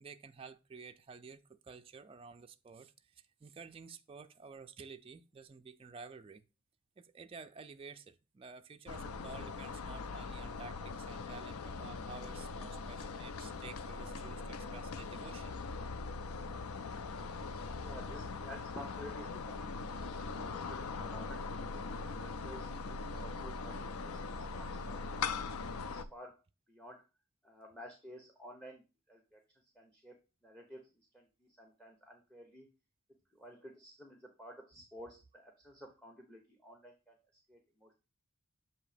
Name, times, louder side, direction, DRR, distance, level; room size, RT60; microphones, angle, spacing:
voice 1, 0.0-2.9 3.4-6.4 7.0-15.5, right 5 dB, 25° right, 0.4 m, -51 dB
sound 1, 8.9-26.0, left 4 dB, 85° left, 0.5 m, -41 dB
voice 2, 17.8-25.4 25.8-26.4 26.7-27.0 27.4-28.8 29.1-29.4 29.7-32.7 33.3-37.1 37.5-37.9, equal, 5° left, 0.8 m, -53 dB
7.2 x 2.8 x 5.0 m
head